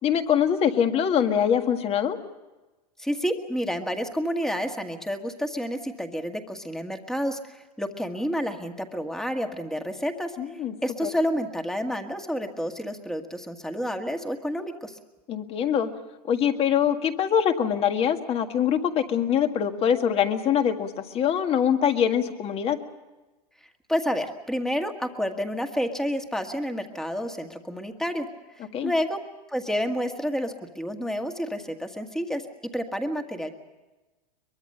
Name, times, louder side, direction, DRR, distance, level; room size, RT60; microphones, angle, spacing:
voice 1, 0.0-2.2 10.4-10.7 11.0-11.1 15.3-15.9 16.2-22.8 28.7-28.9, left 8 dB, 30° left, 7 dB, 1.8 m, -23 dB
voice 2, 3.0-10.4 10.8-15.0 23.9-28.3 28.6-29.2 29.5-32.4 32.7-33.5, equal, ahead, 5 dB, 1.8 m, -29 dB
23.0 x 22.0 x 6.7 m, 1.1 s
supercardioid pair, 135°, 21 cm